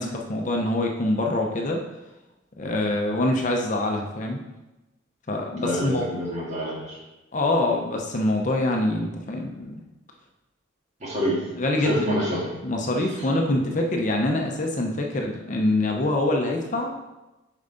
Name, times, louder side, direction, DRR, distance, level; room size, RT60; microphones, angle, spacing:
voice 1, 0.0-1.8 2.6-4.4 5.3-6.1 7.3-9.8 11.6-12.3 12.6-16.9, left 1 dB, 40° left, 1 dB, 0.7 m, -25 dB
voice 2, 5.6-7.0 11.0-11.4 11.8-12.5, equal, 35° right, -4 dB, 1.9 m, -27 dB
7.0 x 5.4 x 3.9 m, 1.0 s
head